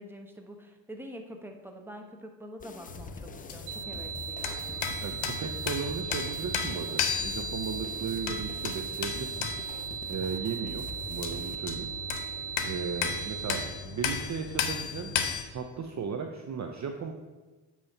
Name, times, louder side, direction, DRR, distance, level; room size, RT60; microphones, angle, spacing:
voice 1, 0.0-5.1, equal, 5° right, 3 dB, 1.1 m, -46 dB
sound 1, 2.6-11.6, left 5 dB, 20° left, 0.4 m, -45 dB
sound 2, 2.9-15.4, left 7 dB, 70° left, 0.9 m, -35 dB
sound 3, 3.7-13.7, right 8 dB, 75° right, 1.4 m, -38 dB
voice 2, 5.0-9.7 10.1-11.9 12.6-15.2 15.5-17.1, right 6 dB, 35° right, 4 dB, 0.7 m, -36 dB
8.7 x 3.1 x 5.4 m, 1.2 s
hypercardioid pair, 50°, 50 cm